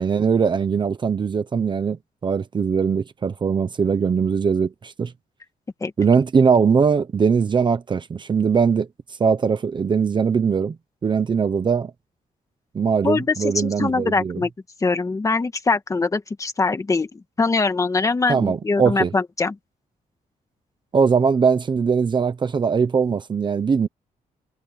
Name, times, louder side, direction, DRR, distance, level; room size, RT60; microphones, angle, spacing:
voice 1, 0.0-2.0 2.2-5.1 6.0-8.9 9.2-10.8 11.0-11.9 12.7-14.4 18.3-19.1 20.9-23.9, right 6 dB, 35° right, 1.0 m, -20 dB
voice 2, 13.0-14.5 14.8-19.6, left 3 dB, 20° left, 1.8 m, -22 dB
wide cardioid pair, 165°, 15 cm